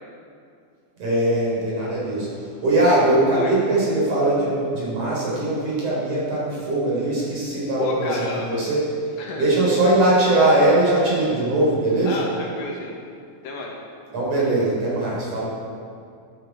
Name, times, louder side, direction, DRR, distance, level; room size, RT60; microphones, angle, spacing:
voice 1, 1.0-8.8 9.1-12.2 14.1-15.4, right 1 dB, 45° right, -6 dB, 4.8 m, -21 dB
voice 2, 7.8-8.6 9.2-9.5 12.1-13.0 13.4-13.8, left 3 dB, 80° left, -1 dB, 3.4 m, -30 dB
13.0 x 11.5 x 4.8 m, 2.3 s
omnidirectional pair, 4.2 m